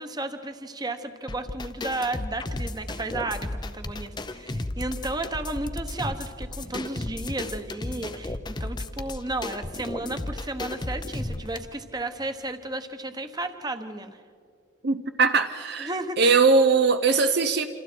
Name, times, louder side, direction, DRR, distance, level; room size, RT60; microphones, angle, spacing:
voice 1, 0.0-14.2 15.8-16.4, right 2 dB, 20° right, 8 dB, 1.1 m, -33 dB
sound 1, 1.3-11.6, left 2 dB, 20° left, 0.6 m, -34 dB
voice 2, 14.8-15.9 16.2-17.7, right 4 dB, 50° right, 8 dB, 0.7 m, -20 dB
28.0 x 27.0 x 4.5 m, 2.4 s
head